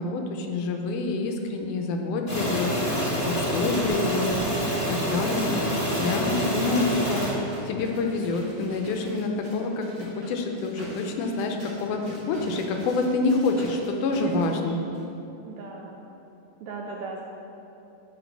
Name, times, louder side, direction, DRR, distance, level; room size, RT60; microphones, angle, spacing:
voice 1, 0.0-3.0 3.2-4.3 4.9-5.6 6.0-14.8, left 3 dB, 80° left, 3 dB, 2.1 m, -27 dB
sound 1, 2.3-7.3, equal, 25° left, 1.1 m, -27 dB
sound 2, 4.5-14.5 14.9-15.0, equal, 50° right, 1.5 m, -43 dB
voice 2, 15.4-16.0 16.6-17.2, right 4 dB, 80° right, -1 dB, 1.7 m, -37 dB
9.3 x 3.6 x 5.9 m, 2.9 s
omnidirectional pair, 3.7 m